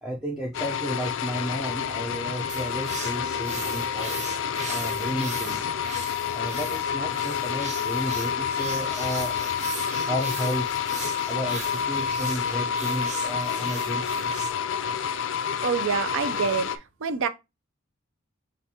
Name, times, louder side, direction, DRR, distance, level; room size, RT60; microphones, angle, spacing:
voice 1, 0.0-4.2 4.7-5.7 6.3-14.5, equal, 5° right, 0.6 m, -33 dB
sound 1, 0.5-16.8, left 7 dB, 60° left, 0.4 m, -29 dB
sound 2, 2.5-14.5, right 4 dB, 35° right, 0.8 m, -39 dB
voice 2, 15.6-16.7 17.0-17.3, right 6 dB, 65° right, 0.5 m, -26 dB
6.9 x 2.5 x 2.8 m
head